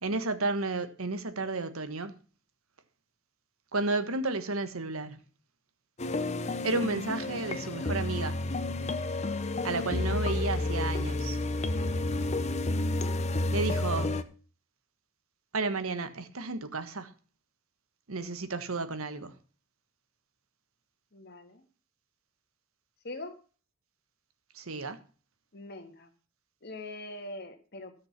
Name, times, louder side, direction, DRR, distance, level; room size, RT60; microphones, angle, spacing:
voice 1, 0.0-2.2 3.7-5.2 6.6-8.4 9.6-11.4 13.5-14.2 15.5-17.1 18.1-19.4 24.5-25.0, right 3 dB, 85° right, 1.3 m, -32 dB
sound 1, 6.0-14.2, left 2 dB, 35° left, 0.7 m, -30 dB
voice 2, 21.1-21.6 23.0-23.4 25.5-26.1 26.6-27.9, left 2 dB, 50° left, 1.7 m, -42 dB
13.5 x 6.6 x 5.9 m
head